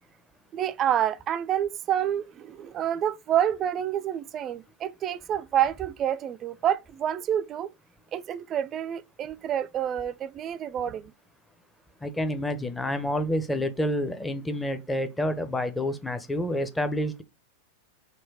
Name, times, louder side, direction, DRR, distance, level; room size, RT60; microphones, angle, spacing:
voice 1, 0.5-7.7 8.1-11.1, right 10 dB, 30° right, 0.3 m, -28 dB
voice 2, 12.0-17.2, left 1 dB, 10° left, 0.6 m, -28 dB
4.1 x 2.2 x 4.6 m
figure-of-eight pair, 90°, 0 cm